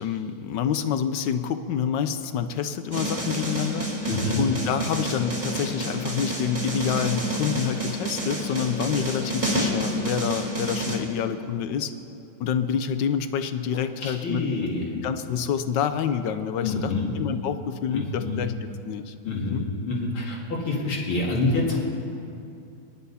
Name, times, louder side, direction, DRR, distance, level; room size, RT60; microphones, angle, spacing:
voice 1, 0.0-11.9 12.4-18.5 18.8-19.1 19.5-19.6, left 8 dB, 70° left, 10 dB, 1.3 m, -27 dB
sound 1, 2.9-11.0, right 1 dB, 20° right, 2.3 m, -29 dB
voice 2, 4.1-4.4 14.0-14.9 16.6-17.1 17.9-18.4 19.2-20.4 20.6-21.8, left 2 dB, 85° left, -3 dB, 3.2 m, -27 dB
29.0 x 10.5 x 4.2 m, 2.7 s
omnidirectional pair, 2.2 m